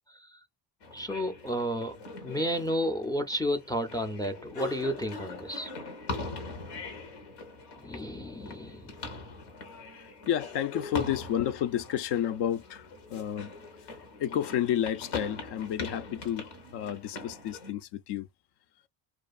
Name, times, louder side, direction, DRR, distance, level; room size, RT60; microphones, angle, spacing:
voice 1, 0.1-0.4 0.9-2.0 2.2-5.7 7.8-9.0, equal, 10° left, 0.4 m, -32 dB
sound 1, 0.8-17.7, left 3 dB, 90° left, 1.1 m, -42 dB
voice 2, 9.7-13.5 13.9-18.3, left 10 dB, 60° left, 0.5 m, -31 dB
2.5 x 2.3 x 2.3 m
supercardioid pair, 65°, 47 cm